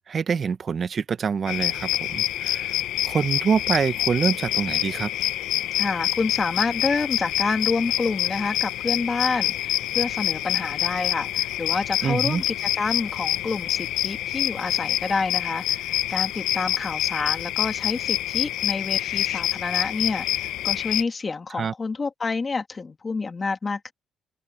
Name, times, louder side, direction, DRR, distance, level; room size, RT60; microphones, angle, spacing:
voice 1, 0.1-2.8 3.0-5.1 12.0-12.4 21.5-21.7, right 6 dB, 45° right, 1.2 m, -25 dB
sound 1, 1.5-21.0, left 13 dB, 90° left, 0.9 m, -26 dB
voice 2, 5.8-23.9, left 4 dB, 30° left, 2.0 m, -28 dB
cardioid pair, 90°, 0 cm